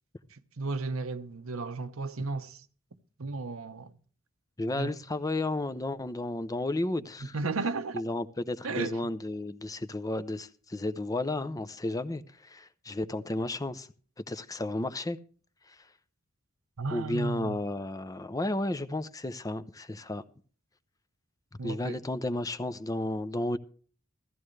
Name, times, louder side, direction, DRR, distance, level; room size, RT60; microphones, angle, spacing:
voice 1, 0.3-2.6 3.2-3.9 4.8-5.0 7.3-8.0 8.6-9.0 16.8-17.6 21.6-22.0, right 3 dB, 90° right, 0.9 m, -34 dB
voice 2, 4.6-7.4 7.9-13.9 14.3-15.2 15.7-15.8 16.9-20.2 21.6-23.6, left 2 dB, 15° left, 0.6 m, -33 dB
15.5 x 14.0 x 3.2 m
head